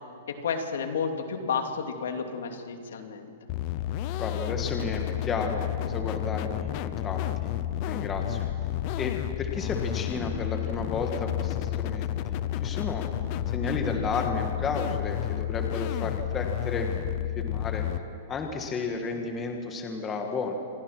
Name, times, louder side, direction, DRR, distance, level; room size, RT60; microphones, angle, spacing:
voice 1, 0.4-3.3, left 6 dB, 75° left, 5 dB, 2.9 m, -31 dB
sound 1, 3.5-18.0, left 12 dB, 30° left, 0.7 m, -31 dB
voice 2, 4.2-7.5 7.9-8.5 9.0-13.1 13.5-17.8 18.3-20.5, left 4 dB, 15° left, 3 dB, 1.5 m, -33 dB
27.5 x 23.5 x 6.1 m, 2.6 s
supercardioid pair, 175°, 0 cm